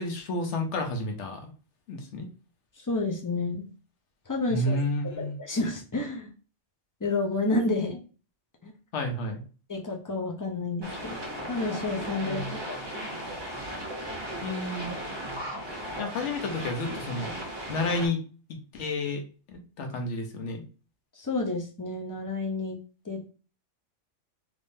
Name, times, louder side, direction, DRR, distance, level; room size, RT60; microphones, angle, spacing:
voice 1, 0.0-1.5 1.9-2.3 4.5-5.3 8.9-9.4 12.2-12.5 14.4-14.9 16.0-17.3 17.7-18.2 18.7-19.2 19.5-20.6, left 2 dB, 70° left, 4 dB, 1.1 m, -31 dB
voice 2, 2.8-3.7 4.3-5.1 5.4-6.3 7.0-8.0 8.6-8.7 9.7-11.2 11.5-12.8 13.0-13.2 21.1-22.8 23.0-23.3, left 2 dB, 25° left, 1 dB, 0.4 m, -30 dB
sound 1, 10.8-18.1, equal, 25° right, 0.8 m, -36 dB
3.5 x 3.1 x 2.6 m, 0.37 s
omnidirectional pair, 1.3 m